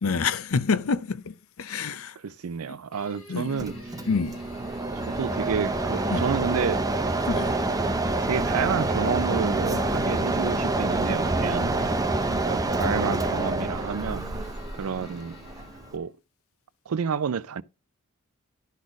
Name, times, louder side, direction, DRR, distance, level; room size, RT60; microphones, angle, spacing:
voice 1, 0.0-2.2 2.7-2.8 3.3-3.7 4.1-4.4 6.1-6.2 7.3-7.5, left 5 dB, 70° left, 0.6 m, -27 dB
voice 2, 1.8-3.8 5.2-6.9 8.3-11.9 12.3-14.2 14.7-15.4 15.9-16.1 16.9-17.6, right 6 dB, 85° right, 0.5 m, -30 dB
sound 1, 2.9-16.1, right 3 dB, 25° left, 4.6 m, -46 dB
Mechanisms, 3.6-16.0, right 2 dB, 15° right, 0.7 m, -27 dB
12.0 x 4.2 x 5.0 m
head